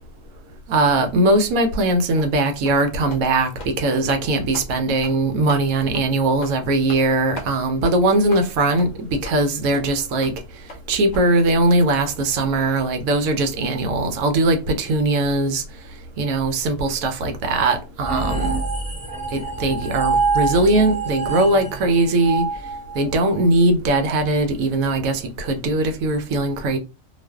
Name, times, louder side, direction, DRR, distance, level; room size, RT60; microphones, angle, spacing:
voice 1, 0.7-10.3 10.9-15.6 16.2-18.6 19.3-22.4 22.9-26.8, right 2 dB, 85° right, 1.0 m, -20 dB
sound 1, 2.2-2.3 2.6-2.8 3.1-3.2 3.5-3.8 4.1-4.2 4.5-4.7 5.0-5.2 5.5-5.6 5.9-6.1 6.4-6.6 6.9-7.1 7.4-7.5 7.8-8.0 8.3-8.5 8.8-8.9 9.2-9.4 9.7-9.8 10.2-10.4 10.7-10.8 11.1-11.2, left 1 dB, 60° left, 0.4 m, -38 dB
sound 2, 18.0-23.4, right 4 dB, 15° right, 0.3 m, -25 dB
2.4 x 2.3 x 2.2 m
omnidirectional pair, 1.4 m